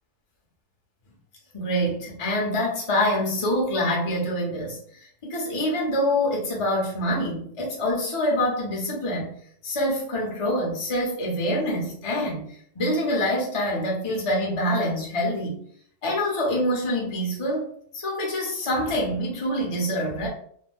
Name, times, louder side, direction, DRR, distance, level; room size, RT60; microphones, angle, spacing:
voice 1, 1.5-9.3 9.6-12.4 12.7-15.6 16.0-17.7 17.9-20.3, equal, 30° left, -3 dB, 0.5 m, -26 dB
2.5 x 2.1 x 3.3 m, 0.63 s
omnidirectional pair, 1.7 m